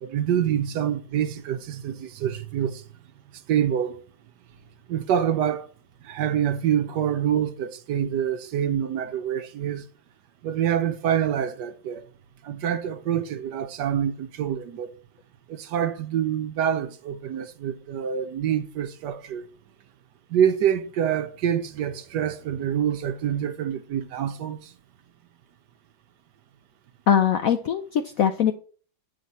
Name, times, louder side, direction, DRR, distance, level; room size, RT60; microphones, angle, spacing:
voice 1, 0.0-2.8 3.5-4.0 4.9-5.7 6.0-9.8 10.4-12.0 12.4-14.9 15.5-19.4 20.3-24.7, right 9 dB, 70° right, 1.1 m, -26 dB
voice 2, 27.1-28.5, left 8 dB, 75° left, 0.8 m, -21 dB
9.1 x 5.6 x 4.1 m
omnidirectional pair, 2.1 m